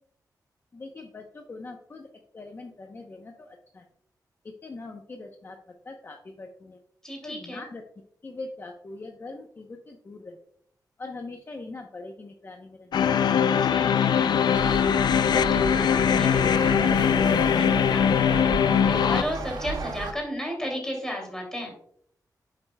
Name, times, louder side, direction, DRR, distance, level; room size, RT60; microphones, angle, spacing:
voice 1, 0.7-3.8 4.6-5.6 5.8-6.8 7.2-7.8 8.2-10.4 11.0-12.9, left 3 dB, 35° left, 3 dB, 0.7 m, -42 dB
voice 2, 7.0-7.6 13.6-21.7, equal, 10° left, 0 dB, 2.5 m, -35 dB
sound 1, 12.9-19.2, left 8 dB, 85° left, 0.4 m, -21 dB
sound 2, 14.5-20.1, right 3 dB, 80° right, 1.0 m, -34 dB
9.4 x 7.5 x 2.2 m, 0.66 s
wide cardioid pair, 165°, 7 cm